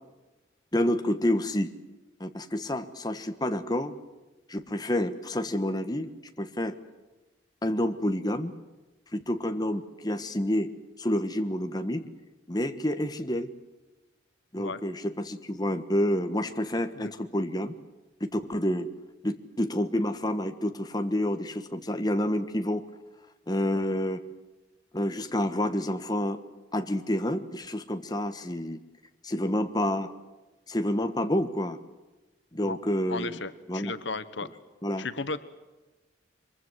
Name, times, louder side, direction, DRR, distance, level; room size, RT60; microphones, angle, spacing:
voice 1, 0.7-1.7 2.2-3.9 4.5-6.1 6.4-6.7 7.6-8.5 9.1-10.7 11.0-12.0 12.5-13.5 14.5-17.7 18.2-18.9 19.2-22.8 23.5-24.2 24.9-26.4 26.7-28.8 29.2-30.1 30.7-31.8 32.5-33.4 33.7-33.9 34.8-35.1, left 1 dB, 20° left, 7 dB, 1.4 m, -28 dB
voice 2, 33.1-34.5 35.0-35.4, left 3 dB, 65° left, 12 dB, 1.2 m, -35 dB
24.5 x 23.0 x 8.1 m, 1.1 s
head